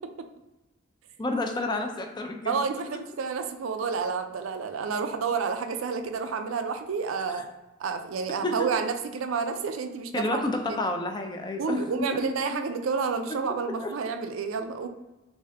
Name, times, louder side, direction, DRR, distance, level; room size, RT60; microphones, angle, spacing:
voice 1, 1.2-2.6 7.3-7.4 8.4-8.7 10.1-12.2 13.3-13.4 13.8-13.9, left 2 dB, 20° left, 4 dB, 0.4 m, -30 dB
voice 2, 2.5-7.4 7.8-10.4 10.7-10.8 11.6-14.9, right 5 dB, 80° right, 7 dB, 0.4 m, -30 dB
3.4 x 2.6 x 3.3 m, 1.0 s
head